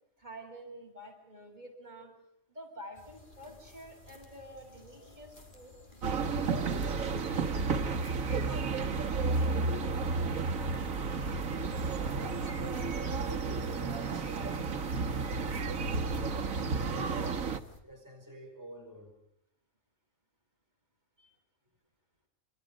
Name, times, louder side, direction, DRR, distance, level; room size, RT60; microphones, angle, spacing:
voice 1, 0.2-2.1 2.5-5.7 6.1-7.0 21.2-21.3, equal, 35° right, 2 dB, 7.2 m, -49 dB
sound 1, 2.9-17.8, left 2 dB, 40° left, 3.7 m, -54 dB
sound 2, 6.0-17.6, right 4 dB, 85° right, 1.8 m, -32 dB
voice 2, 12.1-14.8 15.1-19.2, equal, 15° right, 1 dB, 6.1 m, -50 dB
29.5 x 27.5 x 5.1 m, 0.75 s
omnidirectional pair, 1.4 m